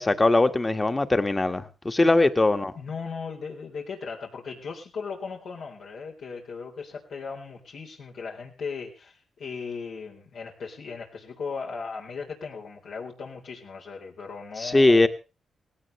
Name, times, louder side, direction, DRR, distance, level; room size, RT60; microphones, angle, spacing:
voice 1, 0.0-2.7 14.6-15.1, left 2 dB, 25° left, 8 dB, 1.7 m, -21 dB
voice 2, 2.7-15.1, left 5 dB, 75° left, 0 dB, 3.9 m, -37 dB
18.5 x 17.0 x 3.3 m, 0.32 s
cardioid pair, 85°, 0 cm